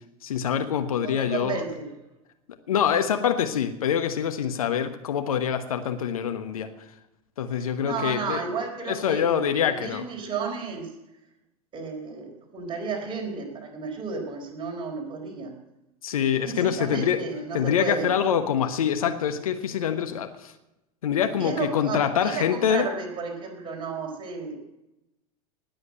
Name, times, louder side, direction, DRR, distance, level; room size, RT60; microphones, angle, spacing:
voice 1, 0.2-1.6 2.7-6.7 7.4-8.4 8.9-10.0 16.0-17.2 17.5-20.5 21.0-22.9, left 8 dB, 65° left, 8 dB, 1.2 m, -25 dB
voice 2, 1.0-1.9 7.5-10.9 11.7-15.5 16.4-18.1 21.2-24.6, right 4 dB, 25° right, 1 dB, 4.4 m, -33 dB
19.0 x 7.8 x 7.7 m, 0.92 s
figure-of-eight pair, 90°, 20 cm